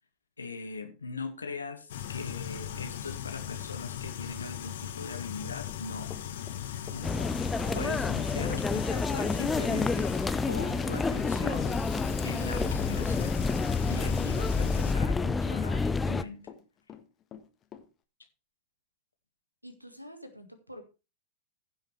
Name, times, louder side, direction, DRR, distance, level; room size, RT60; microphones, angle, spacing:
voice 1, 0.4-6.1 6.9-7.3 7.7-10.1 10.5-11.7 12.2-13.4 13.9-16.4, left 4 dB, 75° left, 6 dB, 1.9 m, -40 dB
sound 1, 1.9-14.9, left 9 dB, 60° left, 1.5 m, -39 dB
Run, 5.4-16.6 16.9-17.8, left 8 dB, 30° left, 1.5 m, -46 dB
sound 2, 7.0-16.2, left 4 dB, 10° left, 0.6 m, -29 dB
voice 2, 19.6-20.8, equal, 90° right, 8 dB, 1.9 m, -47 dB
15.5 x 5.8 x 4.5 m, 0.30 s
figure-of-eight pair, 90°, 0 cm